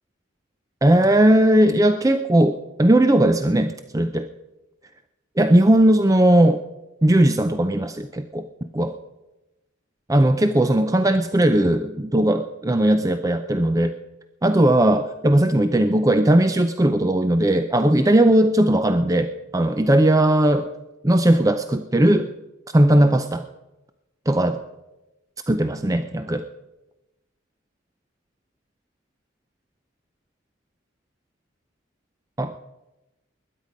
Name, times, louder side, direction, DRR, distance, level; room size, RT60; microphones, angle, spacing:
voice 1, 0.8-4.3 5.4-6.6 7.0-8.5 8.7-9.0 10.1-13.9 14.4-20.7 21.0-22.3 22.7-23.4 24.3-24.6 25.5-26.4 32.4-32.6, right 1 dB, 15° right, 8 dB, 0.5 m, -18 dB
21.0 x 10.0 x 5.2 m, 1.0 s
head